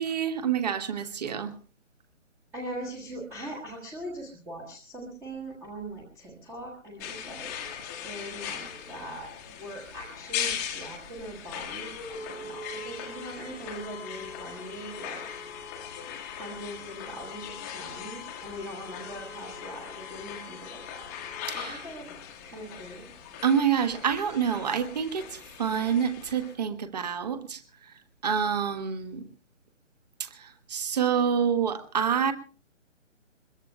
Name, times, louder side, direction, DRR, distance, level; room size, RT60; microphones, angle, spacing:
voice 1, 0.0-1.5 21.5-21.9 23.4-29.2 30.2-32.3, right 7 dB, 30° right, 10 dB, 1.3 m, -28 dB
voice 2, 2.5-7.5 7.8-9.3 9.6-15.3 16.3-21.1 21.5-22.0 22.4-23.1, right 1 dB, 5° right, -2 dB, 1.3 m, -41 dB
sound 1, 7.0-26.6, left 8 dB, 15° left, 1.2 m, -39 dB
23.5 x 21.5 x 2.2 m, 0.37 s
figure-of-eight pair, 140°, 38 cm